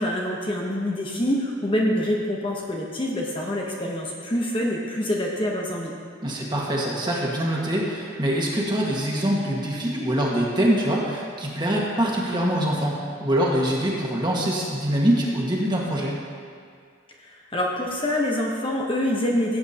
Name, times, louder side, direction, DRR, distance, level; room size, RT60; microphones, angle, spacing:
voice 1, 0.0-5.9 17.2-19.6, left 1 dB, 25° left, -2 dB, 1.0 m, -26 dB
voice 2, 6.2-16.1, right 1 dB, 25° right, -3 dB, 1.6 m, -24 dB
17.0 x 8.5 x 2.9 m, 2.1 s
head